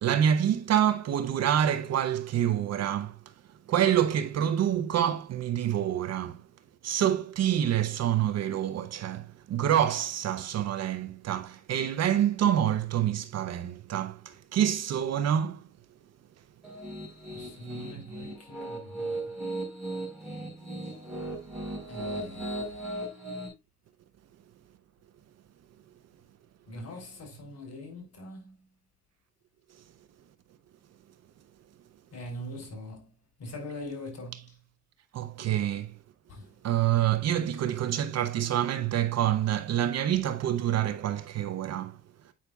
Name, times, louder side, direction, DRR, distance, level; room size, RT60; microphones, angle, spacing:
voice 1, 0.0-3.2 3.7-6.4 6.8-15.6 17.9-18.0 35.1-35.9 36.6-42.0, right 10 dB, 60° right, 0.6 m, -27 dB
Piano, 16.6-23.5, right 1 dB, ahead, 4.0 m, -37 dB
voice 2, 17.3-19.2 21.9-22.8 26.7-28.6 32.1-33.1 33.4-34.5 36.3-36.5, left 1 dB, 55° left, 3.6 m, -42 dB
8.3 x 5.6 x 2.3 m
cardioid pair, 90°, 30 cm